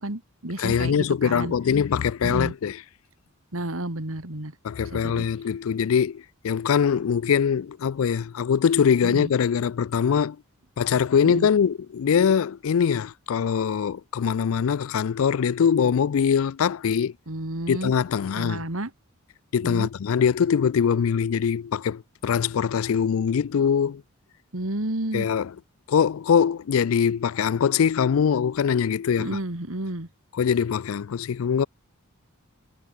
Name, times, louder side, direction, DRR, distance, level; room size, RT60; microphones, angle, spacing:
voice 1, 0.0-1.5 2.2-2.5 3.5-4.5 4.8-5.3 9.0-9.3 11.2-11.5 17.3-17.9 18.4-18.9 19.6-19.9 24.5-25.3 29.2-30.1, right 1 dB, 70° right, 2.8 m, -31 dB
voice 2, 0.6-2.8 4.6-10.4 10.8-17.1 17.7-18.7 19.5-24.0 25.1-25.5 25.9-29.4 30.4-31.7, left 7 dB, 70° left, 0.4 m, -22 dB
head